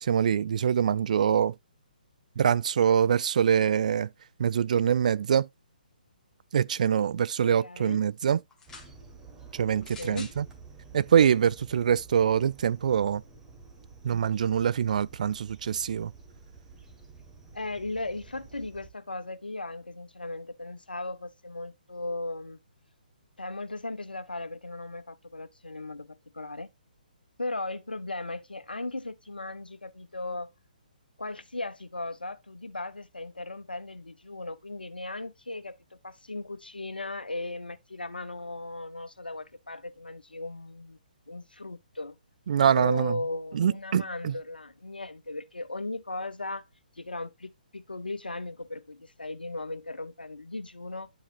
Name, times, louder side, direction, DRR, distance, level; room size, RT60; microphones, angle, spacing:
voice 1, 0.0-1.6 2.4-4.1 4.4-5.5 6.5-8.4 9.5-10.5 10.9-13.2 14.0-16.1 42.5-43.2 43.5-44.4, right 8 dB, 55° right, 0.4 m, -24 dB
voice 2, 7.4-8.0 10.0-10.3 17.5-22.6 23.4-26.7 27.4-30.5 31.2-41.0 41.3-42.2 42.7-46.6 46.9-51.1, left 2 dB, 90° left, 0.8 m, -37 dB
sound 1, 8.5-8.9 9.8-10.4 11.3-11.4, left 4 dB, 10° left, 1.4 m, -46 dB
sound 2, 8.7-18.9, right 4 dB, 10° right, 1.7 m, -51 dB
10.0 x 5.0 x 2.5 m
figure-of-eight pair, 135°, 5 cm